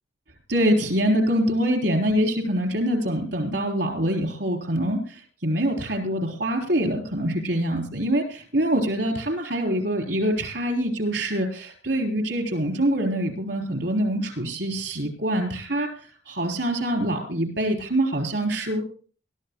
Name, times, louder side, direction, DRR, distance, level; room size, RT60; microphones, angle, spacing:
voice 1, 0.5-15.9 16.3-18.8, right 1 dB, 75° right, 3 dB, 3.7 m, -25 dB
22.0 x 12.5 x 2.3 m, 0.40 s
head